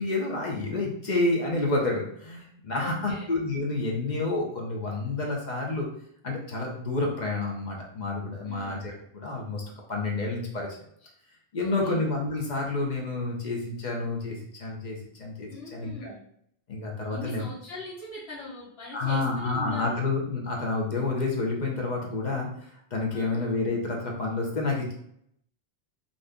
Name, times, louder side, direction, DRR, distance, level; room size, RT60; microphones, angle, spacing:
voice 1, 0.0-5.9 6.2-9.6 9.9-10.7 11.5-16.1 16.7-17.5 18.9-24.9, left 3 dB, 50° left, -1 dB, 0.8 m, -29 dB
voice 2, 2.7-3.3 8.4-8.8 11.6-12.0 15.5-16.2 17.1-20.0 23.1-23.5, left 2 dB, 75° left, -7 dB, 1.1 m, -41 dB
2.6 x 2.5 x 3.4 m, 0.69 s
omnidirectional pair, 1.1 m